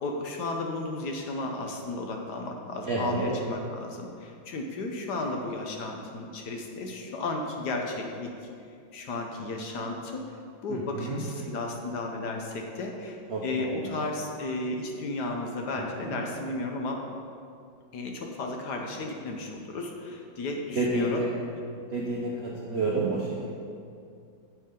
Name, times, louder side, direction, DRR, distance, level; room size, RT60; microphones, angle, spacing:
voice 1, 0.0-8.3 8.9-10.2 10.6-17.0 17.9-21.2 22.3-22.6, left 2 dB, 65° left, 2 dB, 1.3 m, -34 dB
voice 2, 2.9-3.3 10.7-11.2 13.3-14.1 16.0-16.2 20.8-21.3 21.7-23.5, right 2 dB, 55° right, -4 dB, 0.7 m, -30 dB
9.3 x 7.4 x 3.8 m, 2.4 s
omnidirectional pair, 2.1 m